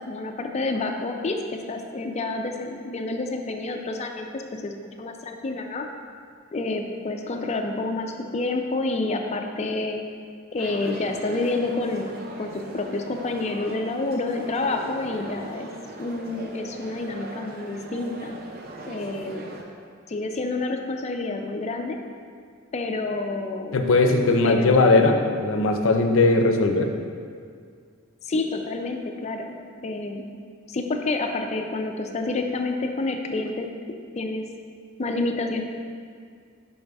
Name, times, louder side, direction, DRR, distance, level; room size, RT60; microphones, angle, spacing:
voice 1, 0.0-1.4 1.7-5.8 6.5-10.0 10.5-12.1 12.4-15.7 16.0-18.4 18.9-19.4 20.1-22.0 22.7-23.8 24.4-24.9 28.2-29.6 29.8-30.2 30.7-33.7 34.2-34.4 35.0-35.6, left 2 dB, 35° left, 4 dB, 0.4 m, -28 dB
sound 1, 10.6-19.6, right 2 dB, 50° right, 0.6 m, -39 dB
voice 2, 23.7-26.9, left 3 dB, 80° left, 4 dB, 0.5 m, -19 dB
5.5 x 5.4 x 3.4 m, 2.1 s
head